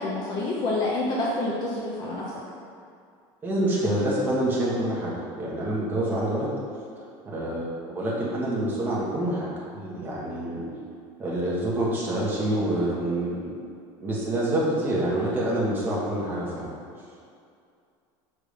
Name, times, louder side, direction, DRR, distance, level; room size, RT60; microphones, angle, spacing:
voice 1, 0.0-2.2, left 2 dB, 40° left, -4 dB, 0.7 m, -27 dB
voice 2, 3.4-6.5 7.2-10.6 11.2-13.5 14.0-16.7, right 1 dB, 15° right, -6 dB, 1.4 m, -27 dB
5.1 x 3.7 x 5.0 m, 2.4 s
cardioid pair, 155°, 11 cm